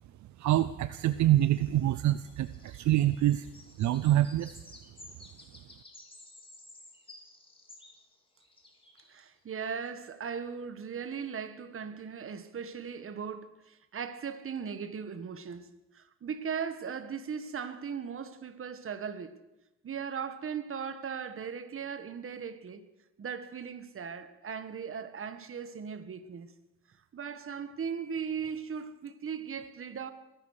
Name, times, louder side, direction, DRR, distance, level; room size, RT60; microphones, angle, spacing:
voice 1, 0.4-3.5 3.8-4.6, right 13 dB, 70° right, 0.6 m, -26 dB
sound 1, 1.4-9.2 9.9-10.0, left 2 dB, 15° left, 3.1 m, -54 dB
voice 2, 9.1-19.4 19.8-22.9 23.2-26.5 27.1-30.1, right 6 dB, 45° right, 1.5 m, -38 dB
22.0 x 10.0 x 6.5 m
cardioid pair, 90°, 30 cm